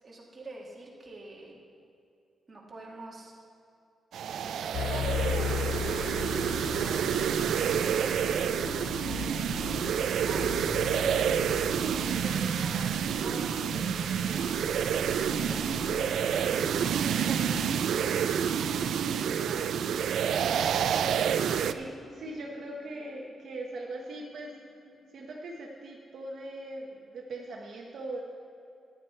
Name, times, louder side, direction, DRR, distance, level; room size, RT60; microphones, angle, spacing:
voice 1, 0.0-1.6 2.5-3.4 4.2-6.3 6.6-7.1 7.4-8.7 9.0-14.8 15.0-18.2 18.6-20.1, right 2 dB, 25° right, -3 dB, 1.9 m, -47 dB
sound 1, 4.1-21.7, right 8 dB, 85° right, 0.4 m, -28 dB
sound 2, 4.7-17.7, left 8 dB, 80° left, 0.5 m, -38 dB
sound 3, 7.8-25.5, left 2 dB, 10° left, 0.9 m, -49 dB
voice 2, 21.6-24.5 25.1-28.2, right 2 dB, 60° right, -1 dB, 1.0 m, -40 dB
14.0 x 9.9 x 4.5 m, 2.6 s
wide cardioid pair, 170°, 0 cm